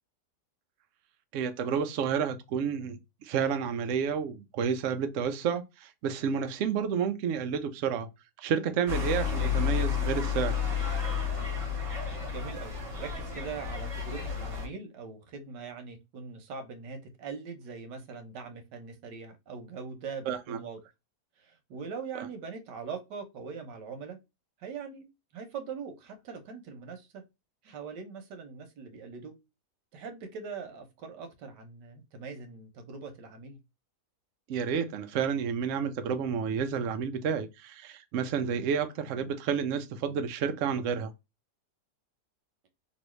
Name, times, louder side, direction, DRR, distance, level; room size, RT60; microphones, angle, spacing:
voice 1, 1.3-8.1 8.4-10.6 20.3-20.6 34.5-41.1, right 7 dB, 70° right, 0.7 m, -30 dB
sound 1, 8.9-14.7, left 7 dB, 45° right, 1.4 m, -31 dB
voice 2, 12.3-20.8 21.4-24.2 24.6-27.2 27.6-29.3 29.9-33.6, right 5 dB, 90° right, 1.4 m, -42 dB
3.0 x 2.7 x 3.0 m
omnidirectional pair, 1.8 m